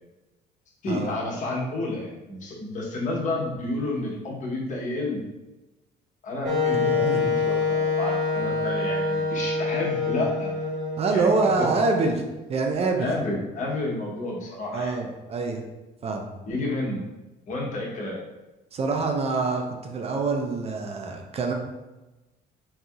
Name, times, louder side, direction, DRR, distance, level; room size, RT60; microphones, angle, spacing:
voice 1, 0.8-5.2 6.2-10.5 11.1-11.8 13.0-15.0 16.5-17.0 17.5-18.2, left 2 dB, 50° left, -3 dB, 1.0 m, -30 dB
Wind instrument woodwind instrument, 6.4-12.3, left 4 dB, 80° right, 1.4 m, -26 dB
voice 2, 6.9-7.2 11.0-12.2 12.5-13.1 14.7-15.6 16.0-16.3 18.7-21.5, right 3 dB, 35° right, 2 dB, 0.5 m, -25 dB
3.9 x 2.7 x 2.4 m, 1.1 s
cardioid pair, 110°, 17 cm